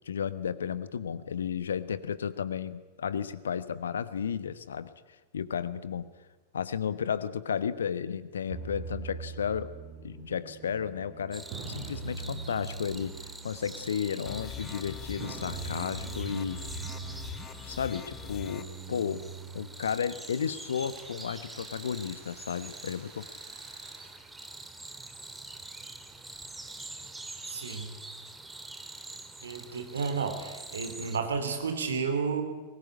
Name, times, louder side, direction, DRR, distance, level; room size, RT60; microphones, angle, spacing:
voice 1, 0.0-4.9 5.3-6.1 6.5-9.7 10.0-13.2 13.4-16.6 17.6-19.3 19.5-23.3, left 7 dB, 65° left, 15 dB, 1.2 m, -33 dB
sound 1, 8.5-24.1, right 5 dB, 45° right, 6.4 m, -44 dB
sound 2, 11.3-31.2, right 2 dB, 10° right, 2.0 m, -45 dB
sound 3, 14.3-18.6, left 8 dB, 25° left, 1.3 m, -43 dB
voice 2, 27.5-27.9 29.4-32.4, right 5 dB, 70° right, 6 dB, 3.6 m, -32 dB
23.0 x 20.0 x 9.7 m, 1.2 s
figure-of-eight pair, 90°, 0 cm